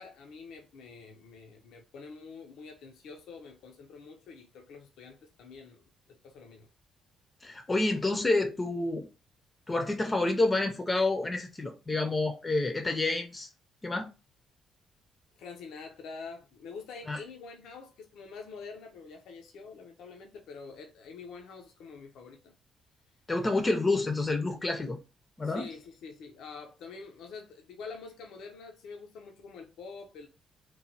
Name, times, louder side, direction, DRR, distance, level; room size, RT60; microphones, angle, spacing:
voice 1, 0.0-6.7 15.4-22.5 25.4-30.3, left 4 dB, 85° left, 0.4 m, -46 dB
voice 2, 7.4-9.1 9.7-13.5 13.8-14.1 17.1-17.2 23.3-25.0 25.4-25.7, left 2 dB, 25° left, 0.4 m, -28 dB
2.9 x 2.1 x 2.6 m
cardioid pair, 90°, 0 cm